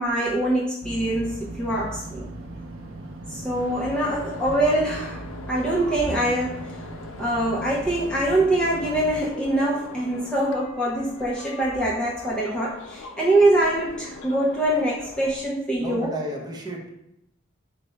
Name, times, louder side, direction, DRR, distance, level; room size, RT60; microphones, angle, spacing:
voice 1, 0.0-2.3 3.3-6.7 7.2-16.1, right 1 dB, 5° left, -5 dB, 0.5 m, -24 dB
sound 1, 0.8-9.2, right 1 dB, 85° right, 0.5 m, -38 dB
sound 2, 3.5-15.5, left 3 dB, 80° left, 0.5 m, -42 dB
voice 2, 15.8-16.9, equal, 20° right, -1 dB, 0.8 m, -32 dB
4.0 x 2.1 x 4.5 m, 0.82 s
head